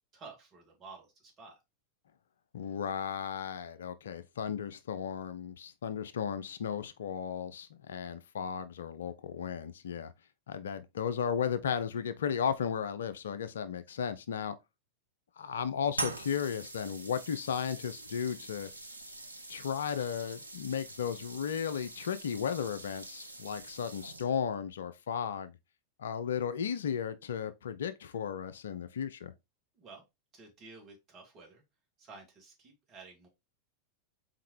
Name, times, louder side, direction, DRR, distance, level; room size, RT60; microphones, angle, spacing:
voice 1, 0.1-1.6 29.7-30.0 30.3-31.6 32.0-33.3, right 4 dB, 30° right, 2.0 m, -52 dB
voice 2, 2.5-10.1 10.5-14.5 15.4-18.7 19.5-25.5 26.0-29.3, left 7 dB, 65° left, 0.4 m, -35 dB
sound 1, 15.9-24.5, right 2 dB, 80° right, 0.5 m, -44 dB
4.2 x 3.8 x 3.1 m
figure-of-eight pair, 90°, 0 cm